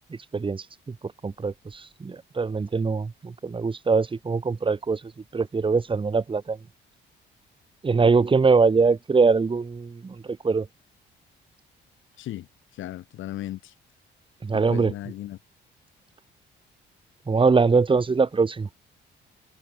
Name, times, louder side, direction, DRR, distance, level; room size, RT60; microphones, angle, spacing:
voice 1, 0.3-6.6 7.8-10.7 14.4-14.9 17.3-18.7, right 4 dB, 25° right, 1.3 m, -23 dB
voice 2, 12.7-13.7 14.5-15.4, left 14 dB, 80° left, 1.3 m, -36 dB
cardioid pair, 90°, 20 cm